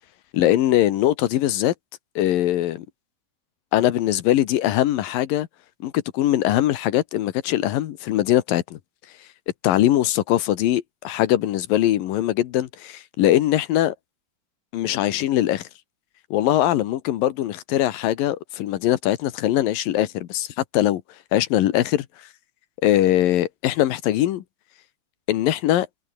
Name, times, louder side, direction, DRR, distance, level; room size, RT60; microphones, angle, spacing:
voice 1, 0.3-1.7 2.2-2.9 3.7-5.5 5.8-8.8 9.6-13.9 14.7-15.7 16.3-20.5 20.7-21.0 21.3-22.1 22.8-24.4 25.3-25.9, left 13 dB, 80° left, 2.9 m, -21 dB
omnidirectional pair, 4.0 m